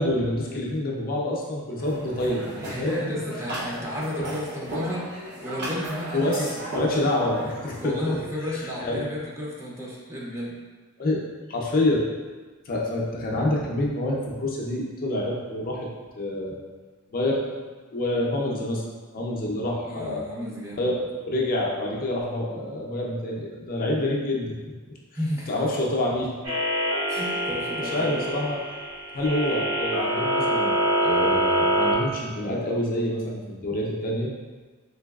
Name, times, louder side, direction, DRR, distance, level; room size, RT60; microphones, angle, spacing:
voice 1, 0.0-3.0 4.2-4.3 6.1-6.5 6.7-8.2 8.8-9.0 11.0-12.1 12.7-15.9 16.2-16.6 17.1-17.6 17.9-18.8 19.1-20.3 20.8-24.5 25.5-26.3 27.9-28.6 29.1-34.3, left 1 dB, 40° left, -3 dB, 0.5 m, -27 dB
sound 1, 1.8-7.9, right 1 dB, 55° right, 0.6 m, -36 dB
voice 2, 2.6-6.6 7.7-10.6 19.8-20.9 25.1-25.5 27.1-28.3, left 1 dB, 15° right, -5 dB, 0.5 m, -32 dB
sound 2, 26.4-31.9, equal, 75° right, 1.1 m, -25 dB
3.9 x 2.7 x 2.3 m, 1.4 s
head